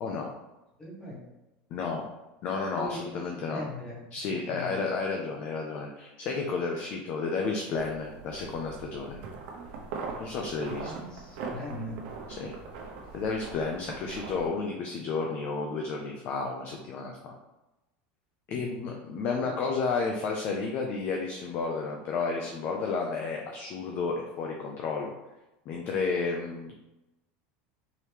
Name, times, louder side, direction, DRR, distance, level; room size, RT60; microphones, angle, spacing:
voice 1, 0.0-0.3 1.7-2.0 2.4-3.7 4.1-9.2 10.2-10.9 12.4-12.5 13.1-17.3 18.5-25.1 25.7-26.7, left 4 dB, 35° left, 1 dB, 0.4 m, -32 dB
voice 2, 0.8-1.2 2.7-4.0 4.5-4.8 10.8-12.0 18.5-18.9, left 1 dB, 15° left, -5 dB, 1.2 m, -40 dB
footsteps in the snow, 7.8-14.5, right 4 dB, 70° right, 0.9 m, -41 dB
4.6 x 2.9 x 3.4 m, 0.99 s
cardioid pair, 180°, 5 cm